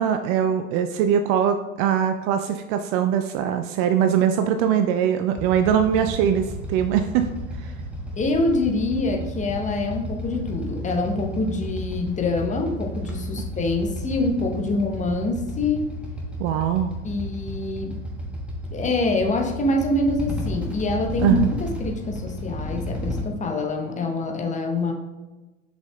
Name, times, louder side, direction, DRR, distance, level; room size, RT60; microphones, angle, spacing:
voice 1, 0.0-7.3 7.6-7.7 16.4-16.9 21.2-21.5, right 9 dB, 40° right, 8 dB, 0.4 m, -22 dB
Motorcycle / Idling, 5.3-23.2, left 1 dB, 5° right, 1.3 m, -32 dB
voice 2, 8.2-15.9 17.0-18.0 18.7-24.9, left 2 dB, 20° left, 3 dB, 0.9 m, -25 dB
6.2 x 5.5 x 3.2 m, 1.1 s
hypercardioid pair, 85°, 40 cm